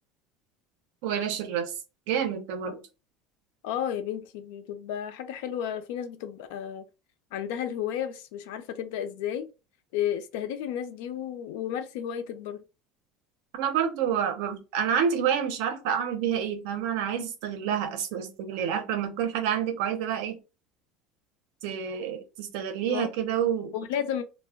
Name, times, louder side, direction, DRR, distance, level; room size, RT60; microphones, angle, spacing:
voice 1, 1.0-1.7 2.1-2.8 13.5-20.4 21.6-23.7, right 8 dB, 70° right, 0.6 m, -28 dB
voice 2, 3.6-6.9 7.3-9.5 9.9-12.6 22.9-23.1 23.7-24.2, left 9 dB, 80° left, 0.4 m, -32 dB
2.2 x 2.1 x 3.3 m
cardioid pair, 175°, 0 cm